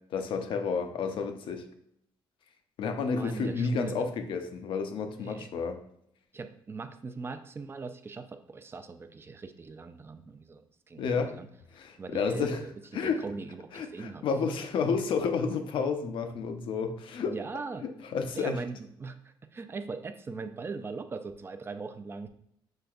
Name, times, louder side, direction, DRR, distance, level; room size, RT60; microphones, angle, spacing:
voice 1, 0.1-1.6 2.8-5.8 11.0-11.3 11.7-12.6 12.9-13.2 13.7-17.4 17.8-18.6, left 5 dB, 65° left, 7 dB, 0.6 m, -31 dB
voice 2, 3.2-4.1 5.2-5.5 6.3-11.5 12.0-12.7 13.0-14.2 17.2-17.8 18.4-22.3, right 4 dB, 25° right, 8 dB, 0.4 m, -40 dB
6.5 x 3.3 x 2.4 m, 0.74 s
cardioid pair, 100°, 9 cm